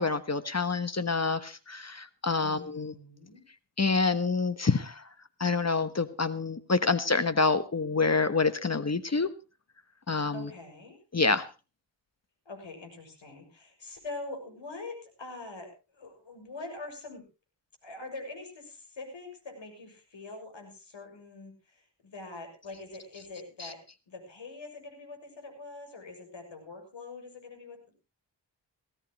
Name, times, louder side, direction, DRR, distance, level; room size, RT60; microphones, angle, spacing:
voice 1, 0.0-2.9 3.8-5.0 5.4-9.3 10.1-10.5 11.1-11.5, left 4 dB, 35° left, 12 dB, 1.3 m, -27 dB
voice 2, 2.4-3.4 10.3-11.0 12.4-17.2 17.8-23.8 24.1-28.0, left 3 dB, 80° left, 4 dB, 6.6 m, -44 dB
19.5 x 16.5 x 3.1 m, 0.31 s
wide cardioid pair, 80°, 44 cm